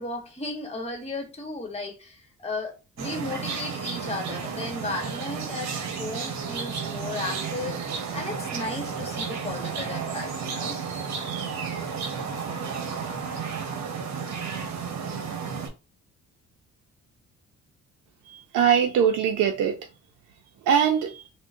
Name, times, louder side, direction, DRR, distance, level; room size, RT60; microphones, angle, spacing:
voice 1, 0.0-5.7 6.0-10.8, left 2 dB, 20° left, 1.2 m, -35 dB
sound 1, 3.0-15.7, right 6 dB, 65° right, 0.9 m, -32 dB
voice 2, 18.3-19.7 20.7-21.2, right 8 dB, 85° right, 0.5 m, -22 dB
3.7 x 2.2 x 2.6 m
cardioid pair, 90°, 30 cm